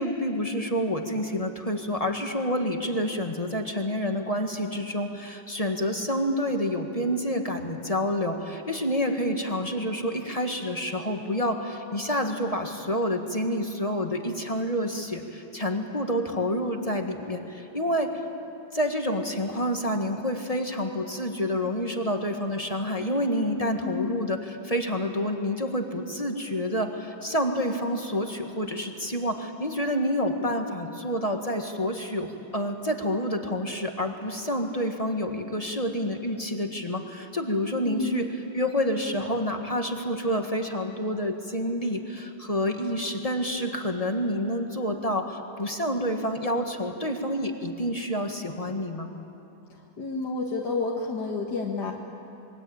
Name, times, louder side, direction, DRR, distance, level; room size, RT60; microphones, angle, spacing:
voice 1, 0.0-18.2 18.7-38.2 38.5-49.1, equal, 20° left, 4 dB, 1.5 m, -28 dB
voice 2, 23.8-24.2 37.8-38.3 50.0-51.9, left 4 dB, 55° left, -1 dB, 2.2 m, -30 dB
27.5 x 22.5 x 8.8 m, 2.9 s
omnidirectional pair, 2.2 m